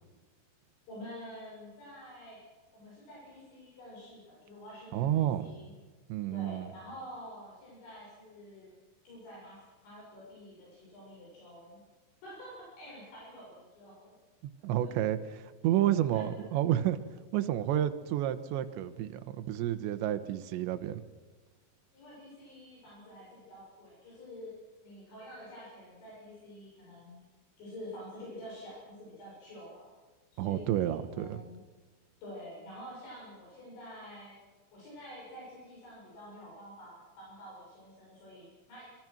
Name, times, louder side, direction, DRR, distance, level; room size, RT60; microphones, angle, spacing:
voice 1, 0.9-2.4 2.7-5.7 6.3-8.7 9.0-11.8 12.2-14.1 14.8-14.9 16.1-16.2 21.9-24.6 24.8-27.2 27.6-29.9 30.3-31.6 32.2-34.3 34.7-38.8, equal, 75° left, -5 dB, 9.2 m, -48 dB
voice 2, 4.9-5.5 6.1-6.7 14.6-17.0 17.3-21.0 30.4-31.4, right 12 dB, 80° right, 10 dB, 3.2 m, -30 dB
26.0 x 22.5 x 6.1 m, 1.4 s
omnidirectional pair, 5.3 m